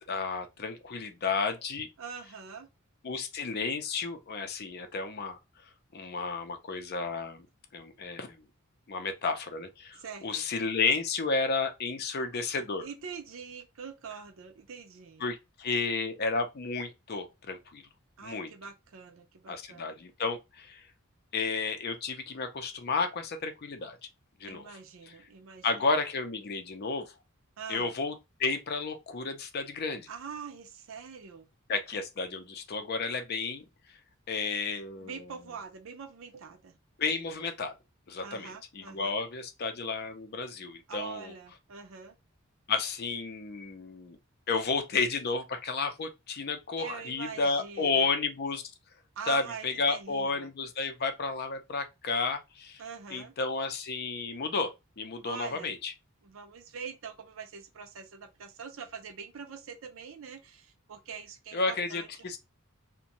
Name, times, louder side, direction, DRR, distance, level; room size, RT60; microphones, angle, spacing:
voice 1, 0.1-1.9 3.0-5.4 5.9-7.5 7.7-8.4 8.9-12.9 15.2-17.8 18.2-18.5 19.5-20.8 21.3-24.0 24.4-24.7 25.6-27.1 27.7-28.1 28.4-30.1 31.7-33.6 34.3-35.2 37.0-37.7 38.1-41.3 42.7-44.2 44.5-48.6 49.3-52.8 53.1-55.9 61.5-62.4, left 4 dB, 50° left, 0.5 m, -32 dB
voice 2, 2.0-2.7 9.9-10.4 12.8-15.2 18.2-20.0 24.4-25.7 27.6-27.9 30.1-31.5 35.0-36.8 38.2-39.2 40.9-42.2 46.8-48.1 49.2-50.5 52.8-53.3 55.2-55.7 56.2-62.1, right 6 dB, 65° right, 0.5 m, -44 dB
2.6 x 2.2 x 2.8 m
head